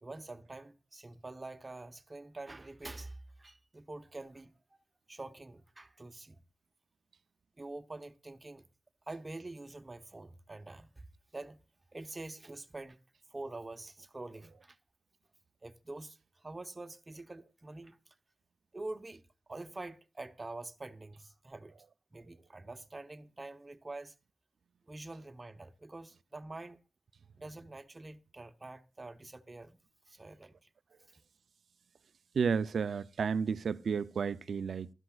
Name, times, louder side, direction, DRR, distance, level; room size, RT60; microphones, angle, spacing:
voice 1, 0.0-4.5 5.1-6.4 7.6-8.6 9.1-11.0 11.3-11.6 11.9-13.0 13.3-14.8 15.6-18.2 18.7-19.2 19.5-21.8 22.1-24.1 24.9-26.8 27.4-29.8 30.1-30.7, right 2 dB, 30° right, 0.9 m, -46 dB
voice 2, 32.3-34.9, right 6 dB, 80° right, 0.5 m, -32 dB
16.0 x 12.5 x 2.4 m
cardioid pair, 60°, 0 cm